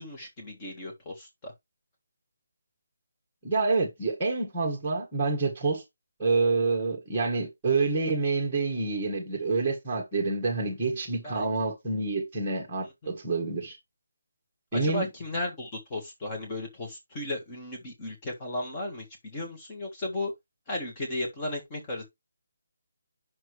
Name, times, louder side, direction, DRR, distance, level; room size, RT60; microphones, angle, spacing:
voice 1, 0.0-1.5 11.2-11.4 12.8-13.1 14.7-20.3 20.7-22.0, left 1 dB, 10° left, 1.7 m, -35 dB
voice 2, 3.4-5.8 6.2-13.8 14.7-15.1, right 3 dB, 5° right, 1.7 m, -27 dB
8.7 x 6.1 x 3.2 m
hypercardioid pair, 180°, 0 cm